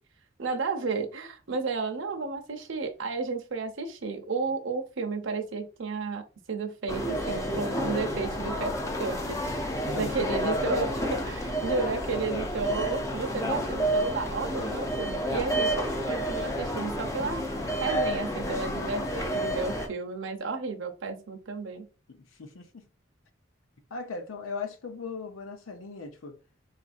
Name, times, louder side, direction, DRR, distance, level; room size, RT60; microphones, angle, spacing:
voice 1, 0.4-8.7 9.0-15.7 16.1-21.9, right 4 dB, 65° right, 0.6 m, -33 dB
sound 1, 6.9-19.9, equal, 15° left, 0.4 m, -30 dB
voice 2, 9.8-10.3 22.1-22.8 23.9-26.4, left 4 dB, 80° left, 0.6 m, -38 dB
4.0 x 2.5 x 2.5 m
head